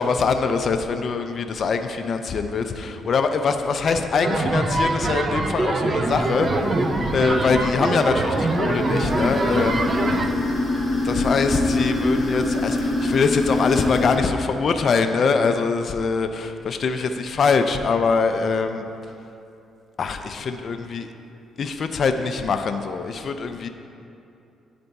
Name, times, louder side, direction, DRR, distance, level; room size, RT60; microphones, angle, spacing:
voice 1, 0.0-6.5 6.8-10.0 11.0-18.9 20.0-21.1 21.6-23.7, left 4 dB, 50° left, 6 dB, 0.4 m, -23 dB
sound 1, 4.2-10.3, right 2 dB, 35° right, 0.5 m, -24 dB
sound 2, 6.0-14.2, left 2 dB, 15° left, 1.4 m, -25 dB
10.0 x 3.4 x 4.0 m, 2.7 s
cardioid pair, 90°, 0 cm